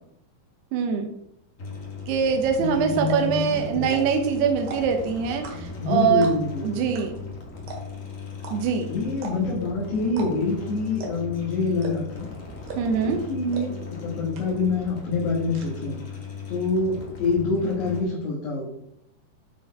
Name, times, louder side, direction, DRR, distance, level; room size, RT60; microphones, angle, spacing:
voice 1, 0.7-1.1 2.1-6.3 6.6-7.1 8.5-8.9 12.8-13.2, right 7 dB, 80° right, 4 dB, 2.9 m, -23 dB
sound 1, 1.6-18.0, left 4 dB, 65° left, 0.7 m, -38 dB
sound 2, 2.5-2.6 3.0-3.3 3.8-4.2 4.6-5.0 5.4-5.8 6.2-6.6 6.9-7.0 7.3-7.4 7.7-8.0 8.4-8.5 9.1-9.6 10.1-10.3 10.5-10.6 11.0-11.3 11.8-12.2 12.7-13.0 13.5-13.6 14.0-14.1 14.3-14.8 15.0-15.7, right 3 dB, 60° right, 3.0 m, -37 dB
voice 2, 2.6-3.5 3.7-4.0 5.8-6.9 8.9-12.3 13.0-13.8 14.0-16.0 16.5-18.7, left 3 dB, 85° left, -4 dB, 3.8 m, -26 dB
10.5 x 4.5 x 4.7 m, 0.77 s
omnidirectional pair, 4.7 m